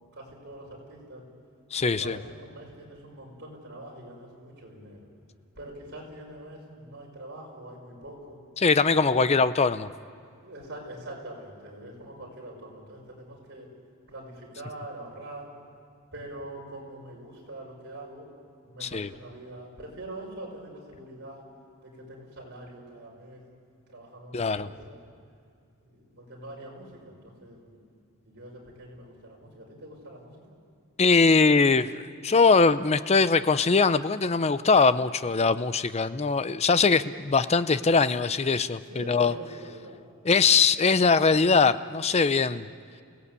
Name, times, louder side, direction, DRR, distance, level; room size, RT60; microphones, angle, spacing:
voice 1, 0.1-1.2 1.8-5.1 5.6-8.4 8.9-9.2 10.4-13.7 14.1-15.5 16.1-18.3 18.6-21.4 21.8-23.4 23.9-25.1 25.8-27.8 28.2-30.3 38.9-40.0, right 1 dB, 50° right, -2 dB, 5.9 m, -44 dB
voice 2, 1.7-2.2 8.6-9.9 18.8-19.1 24.3-24.7 31.0-39.3 40.2-42.7, left 4 dB, 30° left, 14 dB, 0.5 m, -22 dB
28.5 x 17.5 x 8.3 m, 2.3 s
head